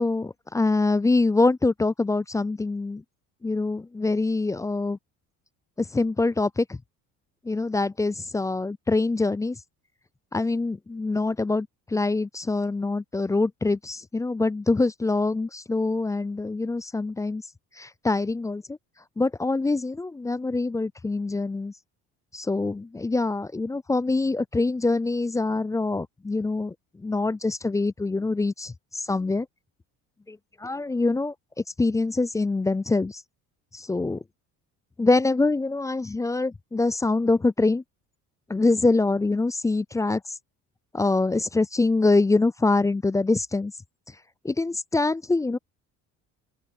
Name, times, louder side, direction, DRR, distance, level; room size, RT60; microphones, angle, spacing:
voice 1, 0.0-3.0 3.4-5.0 5.8-6.7 7.5-9.6 10.3-17.4 17.8-18.8 19.2-21.7 22.3-26.7 27.0-29.5 30.3-31.3 31.8-33.2 33.7-34.2 35.0-37.8 38.5-40.2 40.9-43.7 44.4-45.6, left 3 dB, 10° left, 0.3 m, -24 dB
open air
supercardioid pair, 90°, 33 cm